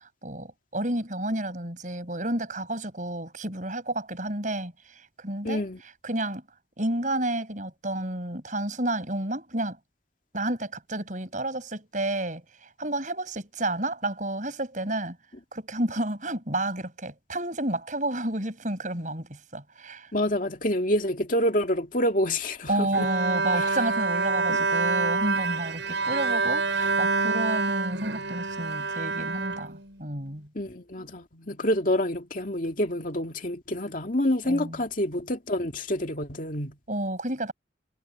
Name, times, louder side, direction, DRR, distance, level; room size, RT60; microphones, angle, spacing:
voice 1, 0.2-4.7 5.2-5.6 6.0-6.4 6.8-9.8 10.3-12.4 12.8-15.2 15.5-20.1 22.7-30.5 34.5-34.8 36.9-37.5, right 1 dB, 40° right, 7.1 m, -30 dB
voice 2, 5.4-5.8 20.1-23.1 23.5-23.8 24.5-24.6 30.5-36.8, left 1 dB, 45° left, 2.4 m, -27 dB
Bowed string instrument, 22.9-30.3, right 4 dB, 70° right, 7.8 m, -27 dB
head